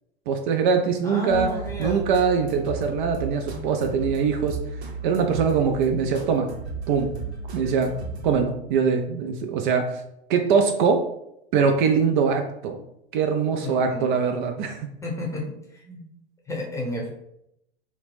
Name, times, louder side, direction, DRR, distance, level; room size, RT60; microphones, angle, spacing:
voice 1, 0.3-1.5 1.8-4.6 5.0-6.5 6.9-7.1 7.5-7.9 8.2-10.0 10.3-11.1 11.5-12.8 13.1-14.9, right 6 dB, 50° right, 5 dB, 0.4 m, -22 dB
voice 2, 1.0-2.1 13.6-14.1 15.0-15.4 15.7-16.0 16.5-17.1, left 1 dB, 10° left, -2 dB, 0.7 m, -32 dB
sound 1, 1.3-8.4, right 4 dB, 85° right, 0.9 m, -34 dB
2.8 x 2.1 x 3.2 m, 0.80 s
hypercardioid pair, 105°, 32 cm